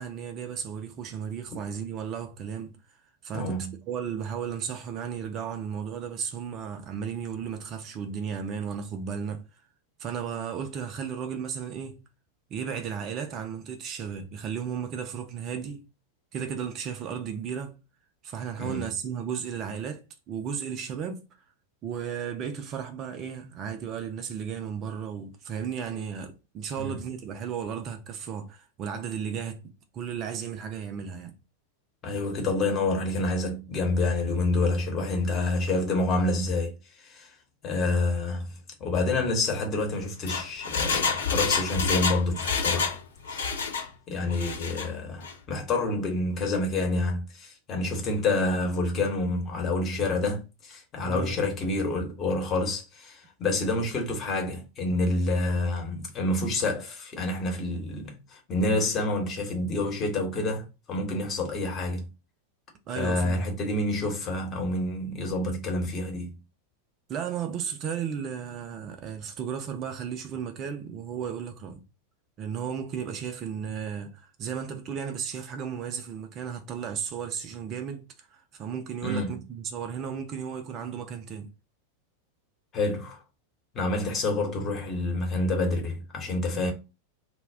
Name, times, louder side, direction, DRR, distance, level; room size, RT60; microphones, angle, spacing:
voice 1, 0.0-2.7 3.2-9.4 10.0-12.0 12.5-15.8 16.3-17.8 18.2-21.3 21.8-29.6 29.9-31.4 51.0-51.4 62.9-63.4 67.1-71.8 72.4-81.5, right 7 dB, 35° right, 0.4 m, -34 dB
voice 2, 3.3-3.7 18.6-18.8 26.8-27.0 32.0-36.7 37.1-37.3 37.6-38.5 38.8-42.9 43.3-43.7 44.1-62.0 63.0-66.3 79.0-79.3 82.7-83.2 83.7-86.7, left 2 dB, 30° left, 1.0 m, -28 dB
Engine, 40.0-43.0 43.3-43.9 44.3-44.9 45.2-45.3, left 5 dB, 65° left, 0.7 m, -28 dB
2.3 x 2.1 x 3.4 m
figure-of-eight pair, 90°, 0 cm